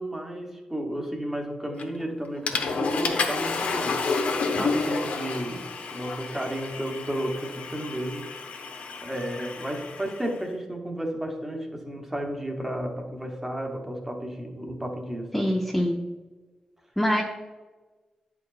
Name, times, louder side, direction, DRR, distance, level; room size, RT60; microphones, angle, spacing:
voice 1, 0.0-4.0 4.3-8.3 9.0-15.5, right 1 dB, 15° right, 2 dB, 1.0 m, -33 dB
Water / Toilet flush, 1.8-2.0 2.5-10.3, left 4 dB, 85° left, 0.8 m, -30 dB
voice 2, 15.3-16.0 17.0-17.2, equal, 5° left, -2 dB, 0.6 m, -24 dB
9.8 x 4.7 x 2.4 m, 1.3 s
wide cardioid pair, 155°, 2 cm